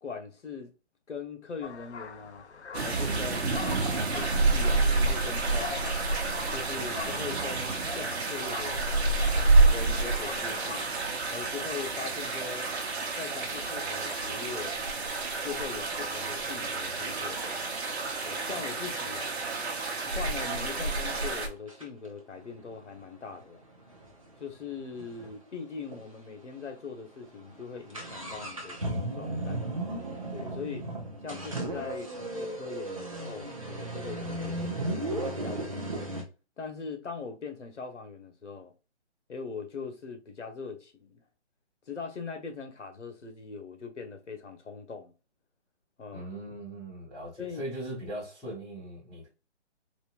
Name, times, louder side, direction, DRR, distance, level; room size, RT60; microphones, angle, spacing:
voice 1, 0.0-0.7 1.1-2.5 2.8-3.6 3.9-6.0 6.5-9.0 9.7-10.9 11.3-12.7 13.2-14.7 15.4-17.4 18.2-19.4 20.0-23.6 24.4-29.7 30.3-30.9 31.2-36.0 36.6-38.7 39.3-41.2 41.9-45.1 46.0-46.3 47.4-47.7, left 5 dB, 85° left, 1.3 m, -41 dB
sound 1, 1.6-11.0, left 5 dB, 70° left, 0.7 m, -42 dB
sound 2, 2.7-21.5, right 3 dB, 65° right, 1.1 m, -28 dB
sound 3, 16.9-17.0 17.4-20.1 20.7-20.8 21.1-21.3 21.7-25.4 25.6-25.7 25.9-26.0 26.6-26.8 27.1-36.2, right 1 dB, 30° right, 0.6 m, -36 dB
voice 2, 46.1-49.3, right 1 dB, ahead, 0.8 m, -39 dB
4.2 x 2.7 x 2.5 m
hypercardioid pair, 180°, 35 cm